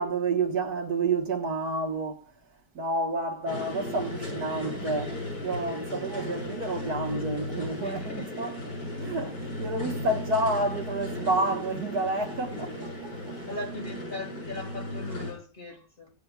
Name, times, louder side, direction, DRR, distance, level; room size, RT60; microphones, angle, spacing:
voice 1, 0.0-2.3 2.8-5.1 5.4-8.5 9.0-13.4, right 2 dB, 65° right, 1.9 m, -29 dB
sound 1, 3.5-15.3, left 1 dB, 80° left, 7.8 m, -36 dB
voice 2, 7.8-8.4 13.5-16.1, left 2 dB, 35° left, 2.1 m, -39 dB
24.5 x 9.5 x 2.4 m
omnidirectional pair, 1.8 m